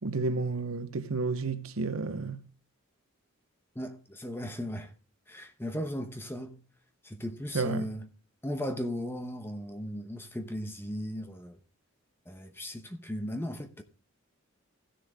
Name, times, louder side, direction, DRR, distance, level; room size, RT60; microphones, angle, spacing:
voice 1, 0.0-2.4 7.5-7.9, right 3 dB, 90° right, 0.8 m, -31 dB
voice 2, 3.7-4.9 5.3-6.6 7.0-8.1 8.4-11.6 12.3-13.8, equal, 10° left, 1.0 m, -36 dB
15.5 x 6.7 x 3.6 m
head